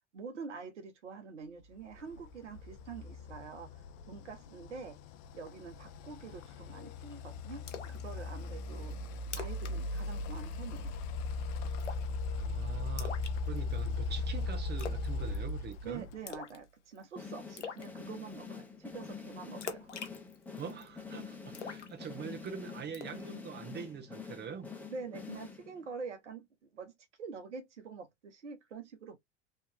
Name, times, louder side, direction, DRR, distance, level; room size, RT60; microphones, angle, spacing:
voice 1, 0.1-5.0 5.3-9.0 9.4-11.0 15.8-19.9 24.9-26.5 26.7-26.9 27.2-29.2, right 5 dB, 80° right, 1.1 m, -46 dB
sound 1, 1.9-16.4, left 3 dB, 55° left, 0.8 m, -38 dB
Splash splatter, 7.7-8.0 8.4-8.5 8.9-9.0 9.2-9.7 10.0-10.2 10.5-10.9 11.8-12.2 13.0-13.9 14.8-15.1 15.3-15.7 16.3-16.6 17.0-17.1 17.6-17.9 19.6-20.9 21.5-22.5 22.9-23.2, left 6 dB, 90° left, 0.9 m, -43 dB
voice 2, 12.3-13.1 13.5-16.0 20.6-24.7, right 7 dB, 30° right, 1.3 m, -44 dB
sound 2, 17.2-26.0, left 5 dB, 5° left, 1.3 m, -46 dB
3.3 x 3.1 x 2.9 m
figure-of-eight pair, 75°, 35 cm